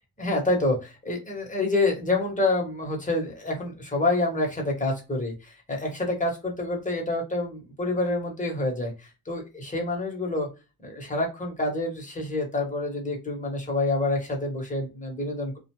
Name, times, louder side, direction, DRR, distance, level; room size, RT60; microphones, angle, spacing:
voice 1, 0.2-10.5 10.8-15.6, left 2 dB, 20° left, 0 dB, 1.1 m, -27 dB
2.3 x 2.2 x 2.9 m, 0.28 s
cardioid pair, 110°, 35 cm